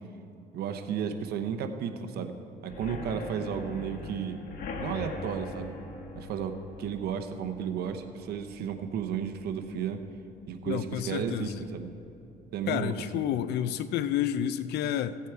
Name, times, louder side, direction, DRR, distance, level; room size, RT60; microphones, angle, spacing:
voice 1, 0.5-2.4 2.6-4.4 4.8-5.7 6.1-10.0 10.5-11.9 12.5-13.3, right 7 dB, 70° right, 7 dB, 0.9 m, -33 dB
sound 1, 2.7-10.3 10.7-11.1 11.3-11.4 11.8-11.9, left 3 dB, 60° left, 1.5 m, -42 dB
voice 2, 10.7-11.6 12.7-15.2, left 10 dB, 75° left, 14 dB, 0.5 m, -30 dB
15.5 x 8.3 x 4.6 m, 2.8 s
cardioid pair, 110°, 17 cm